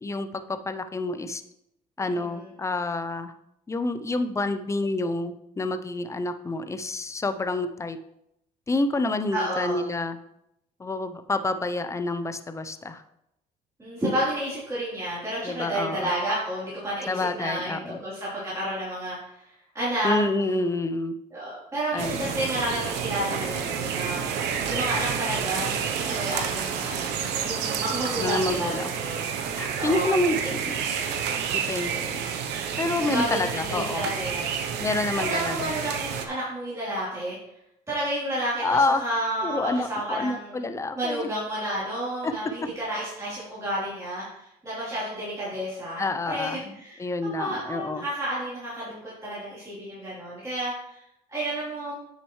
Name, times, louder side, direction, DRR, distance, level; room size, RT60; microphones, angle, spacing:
voice 1, 0.0-1.4 2.0-3.3 3.7-8.0 8.7-10.2 10.8-13.0 15.4-16.1 17.1-18.0 20.0-21.1 21.9-22.3 28.2-28.9 29.6-30.7 31.5-32.3 32.8-34.1 34.8-35.7 38.6-39.0 39.4-41.3 42.2-42.3 46.0-48.0, left 2 dB, 15° left, 9 dB, 0.6 m, -28 dB
voice 2, 2.0-2.5 9.3-9.8 13.8-20.6 21.3-30.4 33.0-34.6 35.1-37.4 37.9-40.6 41.0-51.0 51.3-52.0, right 1 dB, 20° right, -9 dB, 3.4 m, -31 dB
sound 1, 22.0-36.3, right 7 dB, 80° right, 0.8 m, -29 dB
9.3 x 6.6 x 3.2 m, 0.82 s
cardioid pair, 110°, 17 cm